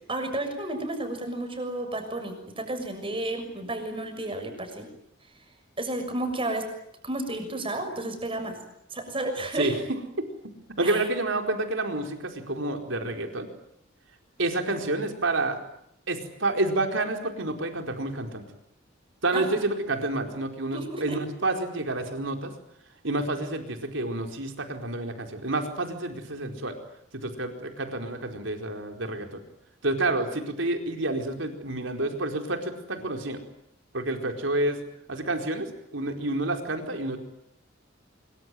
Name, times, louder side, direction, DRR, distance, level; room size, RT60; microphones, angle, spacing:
voice 1, 0.1-4.9 5.8-6.7 7.0-8.6 8.9-9.8 10.8-11.1 19.3-19.4 20.7-21.2, right 1 dB, 30° right, 7 dB, 6.6 m, -32 dB
voice 2, 10.8-13.5 14.4-15.6 16.1-18.4 19.2-22.5 23.0-26.8 27.1-29.4 29.8-33.4 33.9-34.8 35.1-37.2, right 2 dB, 75° right, 4 dB, 4.5 m, -29 dB
25.5 x 23.5 x 9.3 m, 0.76 s
head